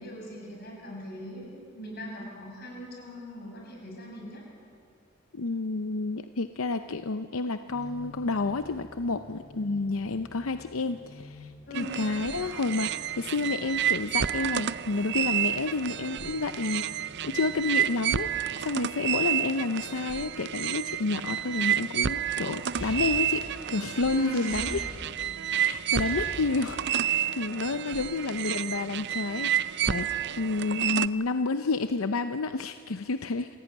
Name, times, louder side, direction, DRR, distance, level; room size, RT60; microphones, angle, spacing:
voice 1, 0.0-4.4 11.7-12.0 24.1-24.7, equal, 50° left, -1 dB, 7.4 m, -40 dB
voice 2, 5.3-24.8 25.5-26.8 27.1-33.5, left 3 dB, 90° left, 9 dB, 0.7 m, -30 dB
sound 1, 7.7-20.5, left 2 dB, 20° left, 6.2 m, -52 dB
sound 2, 11.7-31.1, right 10 dB, 55° right, 0.5 m, -30 dB
sound 3, 22.5-25.4 25.7-27.1, equal, 30° right, 6.5 m, -42 dB
27.5 x 16.5 x 9.2 m, 2.3 s
head